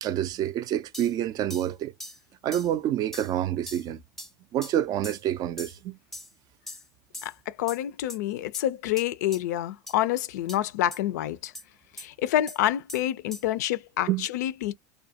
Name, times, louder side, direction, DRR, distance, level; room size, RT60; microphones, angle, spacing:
voice 1, 0.0-1.9 2.4-4.0 4.5-6.0 14.1-14.3, right 11 dB, 45° right, 0.3 m, -27 dB
sound 1, 0.9-1.1 1.5-1.7 2.0-2.2 2.5-2.7 3.1-3.3 3.7-3.9 4.2-4.3 4.6-4.7 5.0-5.2 5.6-5.8 6.1-6.3 6.7-6.9 7.1-7.3 7.7-7.8 8.1-8.2 8.5-8.6 9.0-9.1 9.3-9.4 9.9-10.0 10.5-10.6 10.9-11.0 11.5-11.6 12.0-12.1 12.5-12.6 12.9-13.0 13.3-13.4, left 1 dB, 5° left, 0.6 m, -41 dB
voice 2, 7.2-11.5 12.0-14.7, left 13 dB, 75° left, 0.4 m, -28 dB
2.3 x 2.1 x 2.7 m
hypercardioid pair, 90°, 9 cm